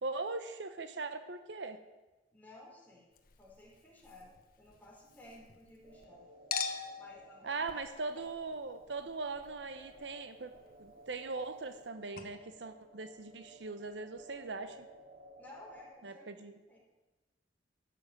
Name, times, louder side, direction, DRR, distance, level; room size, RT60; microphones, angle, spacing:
voice 1, 0.0-1.8 7.4-10.5 10.8-14.8 16.0-16.5, right 3 dB, 75° right, 9 dB, 0.9 m, -40 dB
voice 2, 2.3-3.1 3.4-6.2 6.9-7.8 8.2-8.3 15.4-16.8, left 1 dB, 10° left, -3 dB, 4.2 m, -55 dB
Chink clink, 3.1-6.1 6.5-11.9 12.2-12.3, left 6 dB, 55° left, 1.2 m, -45 dB
sound 1, 5.8-15.9, right 1 dB, 50° right, 2.2 m, -57 dB
13.0 x 6.8 x 9.5 m, 1.1 s
head